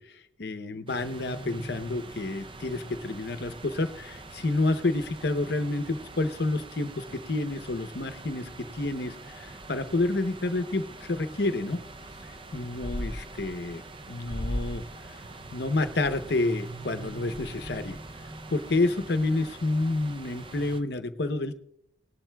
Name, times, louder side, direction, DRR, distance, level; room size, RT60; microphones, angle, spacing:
voice 1, 0.0-11.8 12.5-13.8 14.1-14.8 15.1-15.2 15.5-18.0 18.5-21.6, left 2 dB, 55° left, 10 dB, 0.7 m, -29 dB
sound 1, 0.9-20.8, right 3 dB, 25° right, 0.5 m, -44 dB
sound 2, 12.2-12.5 12.8-13.8 14.2-14.9 15.3-16.3 16.8-16.9 17.1-18.2, left 1 dB, 35° left, 1.0 m, -36 dB
18.5 x 12.0 x 2.3 m, 0.74 s
head